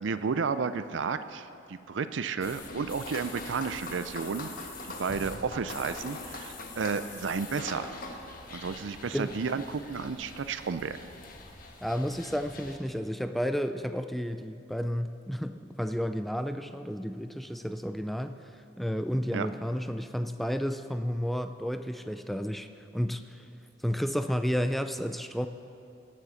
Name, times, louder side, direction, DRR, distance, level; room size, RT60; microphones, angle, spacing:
voice 1, 0.0-8.0 8.5-11.0 19.3-19.5, right 5 dB, 75° right, 11 dB, 0.5 m, -32 dB
sound 1, 2.4-12.8, left 3 dB, 50° left, 1.2 m, -43 dB
voice 2, 11.8-22.7 22.9-23.5 23.8-25.5, equal, ahead, 9 dB, 0.4 m, -32 dB
17.5 x 7.5 x 6.4 m, 2.7 s
head